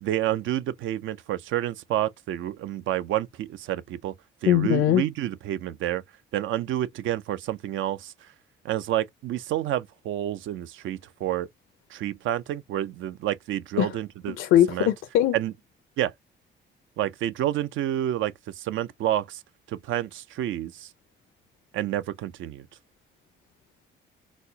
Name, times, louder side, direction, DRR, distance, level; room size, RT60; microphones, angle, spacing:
voice 1, 0.0-4.1 4.4-6.0 6.3-8.1 8.6-11.5 11.9-14.4 14.7-14.9 15.3-15.5 16.0-16.1 17.0-19.4 19.7-20.9 21.7-22.7, right 12 dB, 75° right, 0.5 m, -29 dB
voice 2, 4.5-5.0 13.8-14.0 14.4-15.4, left 12 dB, 85° left, 0.6 m, -21 dB
4.1 x 2.1 x 2.7 m
cardioid pair, 90°, 20 cm